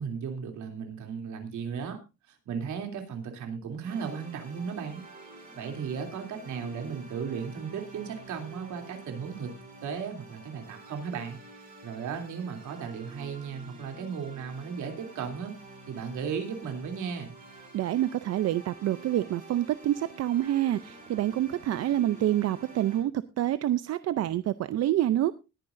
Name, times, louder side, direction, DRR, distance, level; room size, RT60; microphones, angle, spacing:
voice 1, 0.0-2.0 2.5-5.0 5.5-9.5 9.8-11.4 11.8-15.5 15.9-17.3, right 6 dB, 75° right, 4 dB, 3.0 m, -35 dB
sound 1, 3.8-23.0, right 2 dB, 25° right, 6.7 m, -49 dB
voice 2, 17.7-25.4, right 13 dB, 55° right, 14 dB, 0.5 m, -27 dB
20.0 x 9.5 x 2.6 m, 0.26 s
cardioid pair, 160°, 30 cm